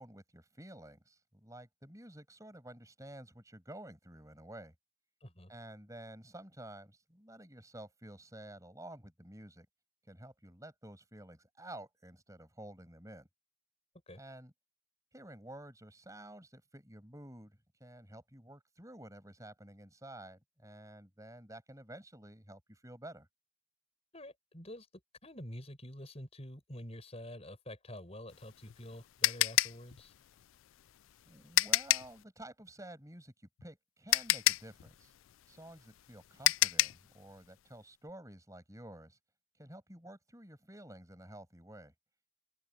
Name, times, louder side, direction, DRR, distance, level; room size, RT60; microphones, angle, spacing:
voice 1, 0.0-4.7 5.5-9.7 10.1-13.3 14.1-14.5 15.1-23.3 31.3-35.1 35.5-39.2 39.6-41.9, right 1 dB, 15° right, 6.9 m, -51 dB
voice 2, 5.2-5.5 14.1-14.2 24.1-24.9 25.2-30.1, left 1 dB, 30° left, 7.0 m, -47 dB
sound 1, 28.3-32.2 33.6-33.7 34.1-37.1, left 16 dB, 75° left, 0.3 m, -29 dB
open air
head